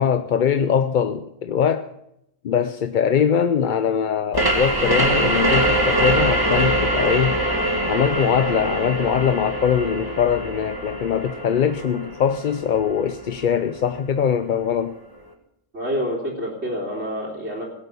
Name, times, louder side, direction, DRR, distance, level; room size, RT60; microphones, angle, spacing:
voice 1, 0.0-1.9 2.4-7.4 7.9-15.0, left 8 dB, 50° left, 10 dB, 0.7 m, -22 dB
sound 1, 4.3-13.7, right 1 dB, 20° right, 2.1 m, -23 dB
voice 2, 15.7-17.6, equal, 70° right, -6 dB, 3.7 m, -27 dB
17.5 x 8.1 x 7.0 m, 0.80 s
omnidirectional pair, 1.2 m